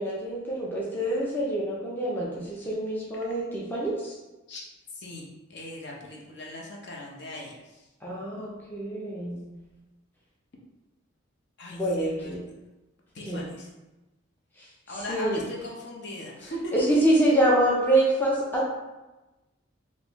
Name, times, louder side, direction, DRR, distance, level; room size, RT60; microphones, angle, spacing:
voice 1, 0.0-4.1 8.0-9.4 11.7-12.4 13.3-13.4 14.6-14.7 15.1-15.4 16.7-18.7, right 1 dB, 10° left, -6 dB, 0.5 m, -26 dB
voice 2, 4.9-7.9 11.6-12.5 13.1-13.7 14.9-17.0, left 1 dB, 55° left, -2 dB, 0.6 m, -39 dB
3.5 x 2.6 x 3.0 m, 1.1 s
head